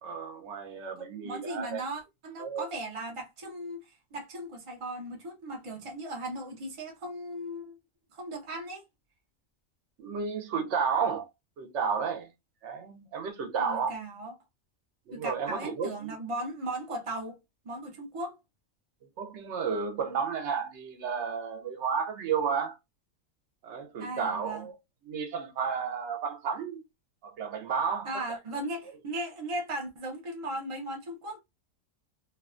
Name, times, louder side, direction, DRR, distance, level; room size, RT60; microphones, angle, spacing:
voice 1, 0.0-1.8 2.4-2.7 10.0-11.3 11.6-12.3 12.6-13.9 15.1-16.2 19.2-22.8 23.6-24.7 25.0-26.8 27.2-28.1, right 6 dB, 65° right, 0.9 m, -32 dB
voice 2, 1.0-7.8 8.1-8.8 13.6-14.4 15.1-17.4 17.6-18.4 24.0-24.7 28.0-31.4, right 1 dB, 50° right, 0.4 m, -37 dB
2.6 x 2.2 x 2.4 m
omnidirectional pair, 1.4 m